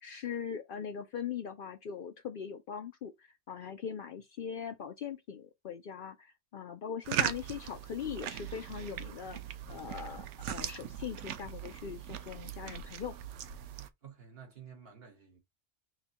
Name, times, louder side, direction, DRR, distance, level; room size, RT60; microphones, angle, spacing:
voice 1, 0.0-9.4 9.7-13.1, left 7 dB, 60° left, 0.6 m, -41 dB
sound 1, 7.0-13.9, right 10 dB, 85° right, 0.9 m, -39 dB
voice 2, 13.8-15.4, right 7 dB, 60° right, 1.6 m, -52 dB
6.1 x 2.2 x 2.8 m
omnidirectional pair, 1.2 m